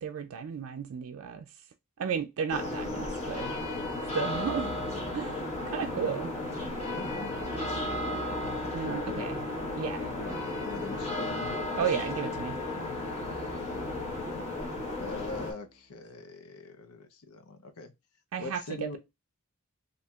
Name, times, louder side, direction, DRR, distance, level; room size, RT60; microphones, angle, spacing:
voice 1, 0.0-1.5 2.0-3.5 4.1-4.7 5.1-6.3 8.7-9.4 9.8-10.1 11.8-12.6 18.3-19.0, right 7 dB, 70° right, 0.4 m, -33 dB
sound 1, 2.5-15.5, left 2 dB, 30° left, 1.2 m, -34 dB
Keyboard (musical), 4.3-6.0 7.4-15.8, right 2 dB, 35° right, 0.7 m, -49 dB
voice 2, 6.9-7.3 8.8-9.3 10.0-10.3 10.6-11.6 15.0-17.9 18.4-19.0, left 3 dB, 85° left, 0.7 m, -42 dB
4.3 x 2.7 x 2.3 m
head